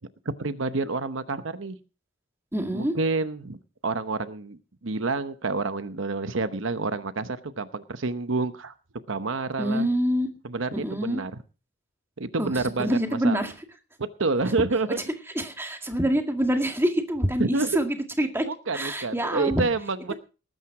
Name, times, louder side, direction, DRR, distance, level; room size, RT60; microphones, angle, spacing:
voice 1, 0.2-1.8 2.7-3.6 3.8-8.7 9.1-9.9 10.4-11.3 12.2-13.4 14.0-15.0 17.4-17.7 18.5-20.1, right 3 dB, 60° right, 11 dB, 0.9 m, -28 dB
voice 2, 2.5-2.9 9.6-10.3 10.7-11.2 12.4-13.5 15.3-18.5 18.7-19.6, right 1 dB, 10° right, 5 dB, 1.9 m, -26 dB
19.5 x 9.2 x 4.8 m, 0.35 s
head